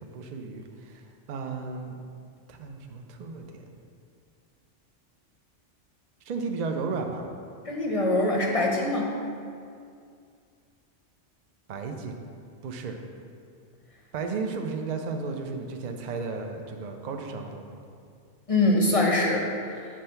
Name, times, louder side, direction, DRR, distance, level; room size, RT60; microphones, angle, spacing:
voice 1, 0.1-1.0 1.3-2.0 2.5-3.6 6.3-7.2 11.7-12.2 12.6-13.0 14.1-17.8, right 4 dB, 50° right, 4 dB, 0.5 m, -34 dB
voice 2, 7.7-9.1 18.5-19.8, left 2 dB, 35° left, -1 dB, 0.7 m, -24 dB
7.5 x 3.3 x 5.7 m, 2.3 s
omnidirectional pair, 1.2 m